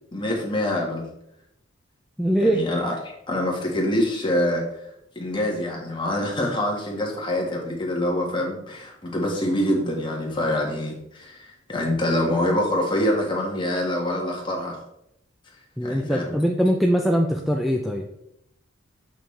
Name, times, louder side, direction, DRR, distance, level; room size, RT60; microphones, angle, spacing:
voice 1, 0.1-1.1 2.4-4.7 5.1-14.8 15.8-16.4, left 1 dB, 25° left, -1 dB, 1.5 m, -25 dB
voice 2, 2.2-2.6 15.8-18.1, equal, ahead, 2 dB, 0.4 m, -22 dB
7.1 x 5.6 x 3.2 m, 0.80 s
head